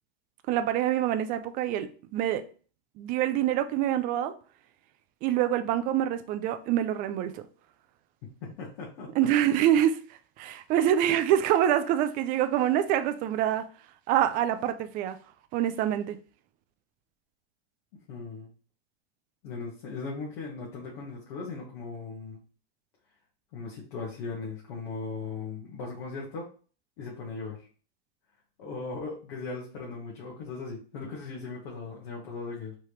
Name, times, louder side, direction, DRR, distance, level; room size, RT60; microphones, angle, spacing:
voice 1, 0.5-2.4 3.0-4.3 5.2-7.4 9.2-10.0 10.4-13.7 14.1-15.2 15.5-16.2, right 11 dB, 25° right, 0.4 m, -25 dB
voice 2, 8.4-9.1 18.1-18.5 19.4-22.4 23.5-26.5 27.0-27.6 28.6-32.7, left 4 dB, 55° left, 1.7 m, -38 dB
4.7 x 3.4 x 3.0 m
supercardioid pair, 140°, 32 cm